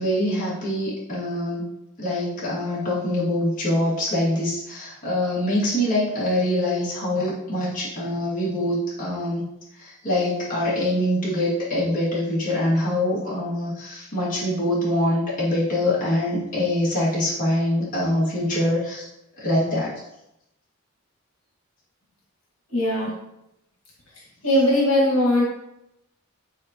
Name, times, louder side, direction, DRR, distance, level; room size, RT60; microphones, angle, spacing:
voice 1, 0.0-1.7 2.0-9.5 9.8-19.1 19.4-19.9, left 1 dB, 40° left, -8 dB, 2.4 m, -24 dB
voice 2, 22.7-23.1 24.4-25.4, left 1 dB, 70° left, -5 dB, 2.1 m, -19 dB
8.5 x 4.3 x 3.0 m, 0.83 s
head